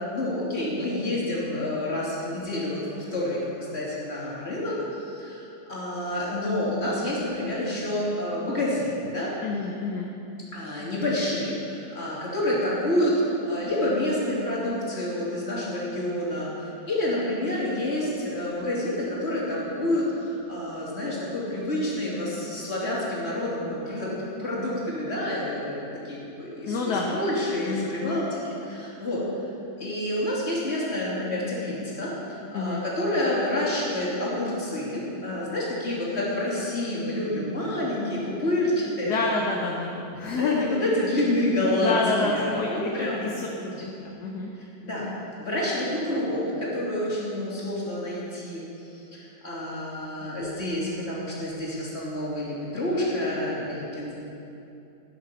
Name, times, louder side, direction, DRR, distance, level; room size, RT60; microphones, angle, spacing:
voice 1, 0.0-9.3 10.5-29.2 29.8-39.2 39.7-39.8 40.2-43.7 44.6-45.1 45.4-48.6 48.9-54.1, left 1 dB, 35° left, -6 dB, 3.3 m, -28 dB
voice 2, 9.4-10.1 26.7-27.2 27.7-28.2 32.5-32.8 39.0-40.7 41.8-42.7 43.0-43.1 43.4-43.5 43.8-43.9 44.2-44.5, left 3 dB, 65° left, -1 dB, 1.5 m, -28 dB
12.5 x 10.0 x 5.8 m, 2.8 s
omnidirectional pair, 1.9 m